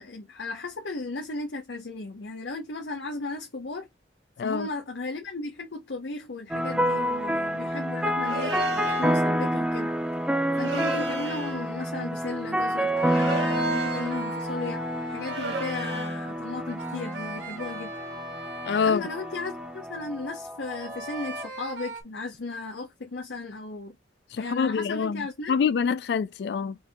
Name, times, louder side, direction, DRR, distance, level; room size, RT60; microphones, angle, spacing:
voice 1, 0.0-3.9 4.4-9.9 10.6-17.9 18.8-24.0 24.4-25.5, left 3 dB, 85° left, 0.8 m, -35 dB
sound 1, 6.5-21.5, right 1 dB, 5° right, 0.4 m, -29 dB
sound 2, 8.2-9.1 10.5-11.6 13.0-14.2 15.2-16.2, right 2 dB, 85° right, 1.6 m, -33 dB
sound 3, 12.9-20.0 20.7-22.0, right 1 dB, 70° right, 1.1 m, -39 dB
voice 2, 18.7-19.0 24.4-25.2 25.5-26.8, left 6 dB, 65° left, 0.3 m, -25 dB
4.6 x 2.7 x 3.5 m
head